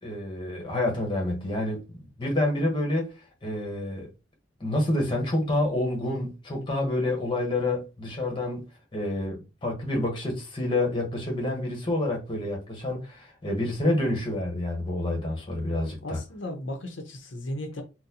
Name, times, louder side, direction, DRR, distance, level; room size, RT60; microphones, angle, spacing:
voice 1, 0.0-3.1 3.4-4.1 4.6-8.7 8.9-16.2, left 1 dB, 25° left, 1.0 m, -28 dB
voice 2, 16.0-17.8, left 1 dB, 80° left, 0.8 m, -35 dB
4.0 x 2.1 x 2.8 m
head